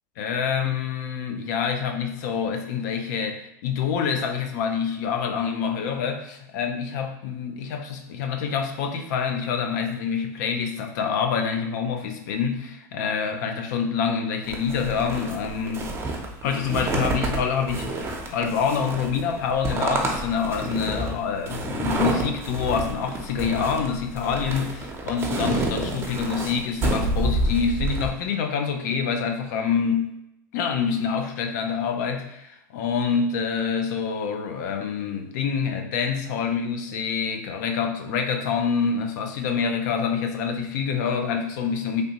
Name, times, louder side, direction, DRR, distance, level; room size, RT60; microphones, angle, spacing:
voice 1, 0.2-15.9 16.4-30.1 30.5-42.0, left 6 dB, 70° left, 4 dB, 0.5 m, -26 dB
sound 1, 14.5-28.1, right 2 dB, 25° right, 0.7 m, -28 dB
3.2 x 2.6 x 2.9 m, 0.84 s
hypercardioid pair, 100°, 10 cm